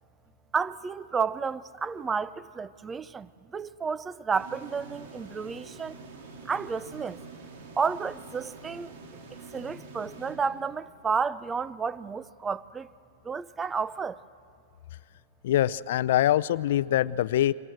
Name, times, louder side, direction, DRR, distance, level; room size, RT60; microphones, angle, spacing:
voice 1, 0.5-6.0 6.4-7.2 7.8-8.9 9.5-12.9 13.2-14.2, right 5 dB, 15° right, 0.5 m, -31 dB
sound 1, 4.3-11.1, right 3 dB, 65° right, 3.5 m, -46 dB
voice 2, 15.4-17.5, left 12 dB, 65° left, 0.5 m, -24 dB
25.5 x 18.5 x 7.9 m
hypercardioid pair, 145°, 0 cm